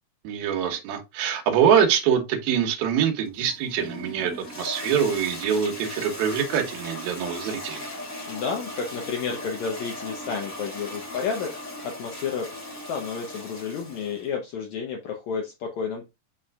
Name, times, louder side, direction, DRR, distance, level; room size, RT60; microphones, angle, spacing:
voice 1, 0.2-7.9, right 8 dB, 75° right, 3.0 m, -24 dB
Toilet flush, 3.2-14.3, left 1 dB, 40° left, 1.0 m, -38 dB
voice 2, 8.3-11.5 11.8-12.5 12.9-16.1, left 6 dB, 75° left, 1.7 m, -31 dB
9.4 x 4.4 x 2.4 m
omnidirectional pair, 4.4 m